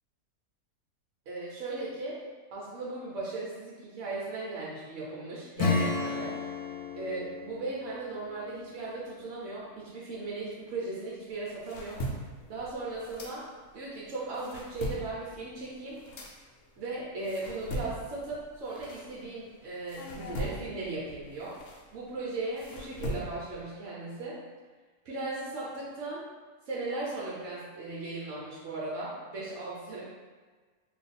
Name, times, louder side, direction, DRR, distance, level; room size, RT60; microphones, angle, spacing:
voice 1, 1.3-2.2 2.5-6.4 6.9-12.0 12.5-13.5 13.7-16.0 16.8-21.6 21.9-24.4 25.0-26.3 26.7-30.0, right 2 dB, 65° right, -6 dB, 1.0 m, -37 dB
Acoustic guitar / Strum, 5.6-9.9, left 4 dB, 90° left, 1.1 m, -34 dB
sound 1, 11.3-13.8 14.2-19.5 19.9-23.6, equal, 70° left, 0.9 m, -40 dB
2.6 x 2.4 x 4.0 m, 1.4 s
omnidirectional pair, 1.5 m